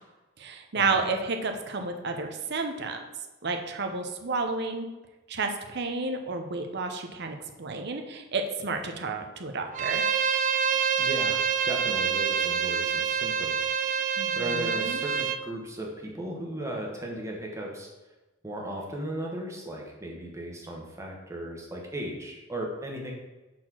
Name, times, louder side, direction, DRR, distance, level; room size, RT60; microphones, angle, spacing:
voice 1, 0.4-3.0 3.4-4.9 5.3-10.1 14.2-15.0, right 3 dB, 55° right, 5 dB, 0.8 m, -31 dB
Bowed string instrument, 9.7-15.4, right 7 dB, 40° right, 0.4 m, -27 dB
voice 2, 11.0-13.7 14.3-17.9 18.4-23.1, right 1 dB, 15° right, -1 dB, 1.3 m, -36 dB
6.0 x 4.3 x 6.1 m, 1.1 s
head